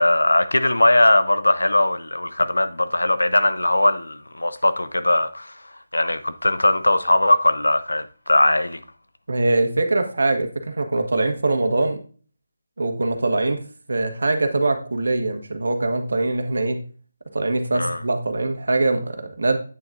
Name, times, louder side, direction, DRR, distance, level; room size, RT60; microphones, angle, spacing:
voice 1, 0.0-5.6 5.9-8.8 17.7-18.0, left 1 dB, 90° left, 0.8 m, -19 dB
voice 2, 9.3-12.0 12.8-13.6 13.9-16.8 17.3-19.6, right 2 dB, 70° right, 1.4 m, -22 dB
8.6 x 7.3 x 2.6 m
figure-of-eight pair, 155°, 0 cm